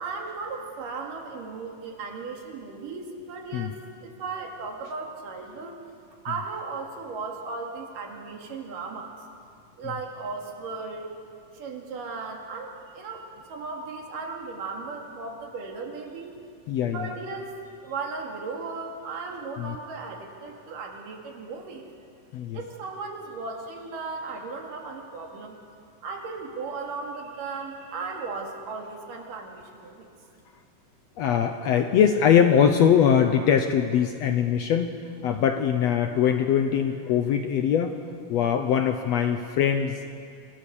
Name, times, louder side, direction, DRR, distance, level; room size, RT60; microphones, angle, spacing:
voice 1, 0.0-5.8 6.2-9.2 9.8-11.2 11.5-16.4 16.9-21.9 22.5-25.6 26.0-30.1, right 4 dB, 80° right, 2 dB, 3.8 m, -36 dB
voice 2, 16.7-17.1 19.6-19.7 22.3-22.6 31.2-34.9 35.2-38.0 38.3-40.1, left 8 dB, 70° left, 7 dB, 1.6 m, -22 dB
26.0 x 17.5 x 7.1 m, 2.4 s
omnidirectional pair, 3.8 m